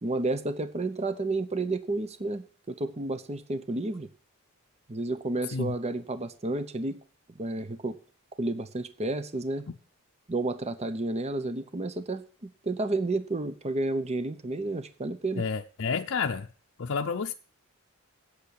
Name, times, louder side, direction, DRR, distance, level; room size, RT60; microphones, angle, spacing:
voice 1, 0.0-4.1 4.9-7.0 7.3-8.0 8.4-9.7 10.3-15.5, right 2 dB, 30° right, 0.8 m, -31 dB
voice 2, 15.4-16.5 16.8-17.3, left 5 dB, 60° left, 0.6 m, -30 dB
8.2 x 8.2 x 8.3 m
head